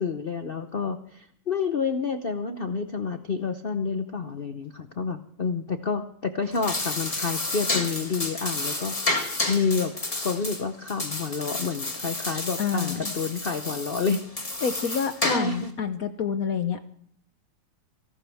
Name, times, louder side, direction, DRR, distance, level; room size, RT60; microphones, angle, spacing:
voice 1, 0.0-9.9 10.2-14.2 14.8-15.0 15.2-15.7, left 5 dB, 85° left, 9 dB, 0.5 m, -29 dB
sound 1, 6.4-15.7, left 2 dB, 20° left, 1.6 m, -31 dB
voice 2, 12.6-13.1 14.6-16.8, left 6 dB, 60° left, 9 dB, 0.9 m, -28 dB
28.0 x 12.5 x 3.5 m, 0.65 s
omnidirectional pair, 2.2 m